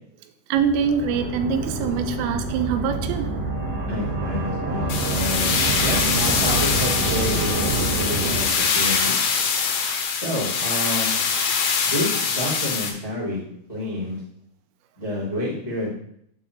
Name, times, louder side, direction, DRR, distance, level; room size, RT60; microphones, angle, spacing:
sound 1, 0.5-9.0, right 3 dB, 55° right, 1.8 m, -27 dB
voice 1, 0.5-3.3, right 6 dB, 85° right, 7 dB, 3.2 m, -24 dB
voice 2, 3.9-9.1 10.2-11.1 11.8-13.4 13.7-14.2 15.0-15.9, left 1 dB, 60° left, -7 dB, 0.4 m, -29 dB
sound 2, 4.9-12.9, left 6 dB, 80° left, 3.8 m, -23 dB
8.4 x 3.6 x 6.7 m, 0.72 s
omnidirectional pair, 5.9 m